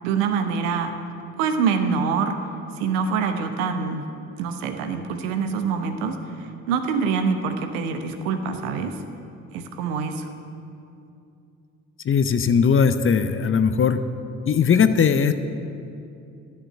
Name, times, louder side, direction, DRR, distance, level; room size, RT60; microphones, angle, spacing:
voice 1, 0.0-0.9 1.4-2.4 2.8-4.0 4.4-8.9 9.5-10.3, right 5 dB, 70° right, 7 dB, 1.0 m, -25 dB
voice 2, 12.0-14.0 14.5-15.3, left 6 dB, 30° left, 11 dB, 0.7 m, -19 dB
11.0 x 6.8 x 8.8 m, 2.6 s
figure-of-eight pair, 45°, 41 cm